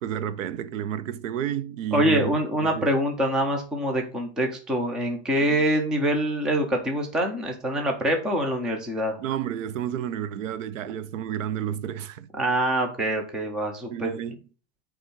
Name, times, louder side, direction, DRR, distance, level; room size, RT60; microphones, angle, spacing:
voice 1, 0.0-2.9 9.2-12.3 13.9-14.4, right 10 dB, 90° right, 0.9 m, -31 dB
voice 2, 1.9-9.2 12.4-14.1, right 1 dB, ahead, 0.3 m, -25 dB
8.3 x 3.4 x 5.2 m
supercardioid pair, 165°, 37 cm